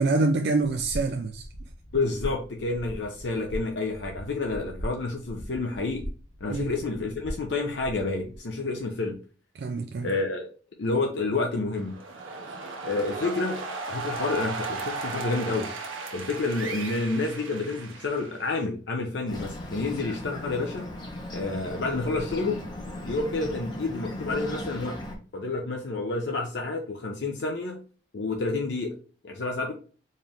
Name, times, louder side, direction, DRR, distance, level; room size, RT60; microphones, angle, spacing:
voice 1, 0.0-1.5 6.5-6.8 9.5-10.1, right 3 dB, 55° right, 0.4 m, -26 dB
sound 1, 0.6-8.4, equal, 85° left, 0.9 m, -40 dB
voice 2, 1.9-6.0 6.4-9.2 10.0-10.5 10.8-12.0 12.8-13.6 13.9-15.7 16.1-20.9 21.3-22.6 23.0-25.0 25.3-27.8 28.1-28.9 29.2-29.7, left 3 dB, 60° left, 0.6 m, -29 dB
sound 2, 11.8-18.7, right 4 dB, 85° right, 0.8 m, -36 dB
Bird, 19.3-25.2, left 1 dB, 20° left, 0.8 m, -37 dB
4.3 x 2.4 x 3.4 m
head